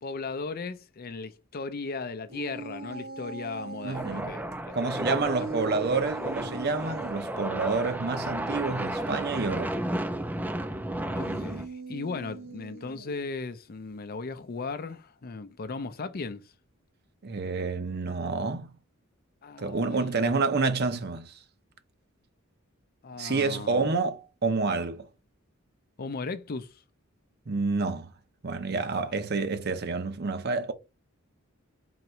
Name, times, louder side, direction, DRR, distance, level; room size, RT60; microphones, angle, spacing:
voice 1, 0.0-4.8 5.1-5.2 5.6-5.7 11.1-16.5 19.4-20.3 23.0-24.0 26.0-26.8 28.9-29.1, left 4 dB, 45° left, 0.5 m, -37 dB
sound 1, 2.3-4.3 5.3-7.2 11.0-13.3, right 3 dB, 85° right, 1.3 m, -40 dB
voice 2, 3.8-4.3 4.7-9.8 17.2-18.7 19.6-21.4 23.2-25.1 27.5-28.1 28.4-30.7, right 4 dB, 50° right, 0.8 m, -29 dB
sound 2, 3.9-11.7, right 1 dB, 10° right, 0.4 m, -33 dB
3.9 x 2.9 x 4.4 m
head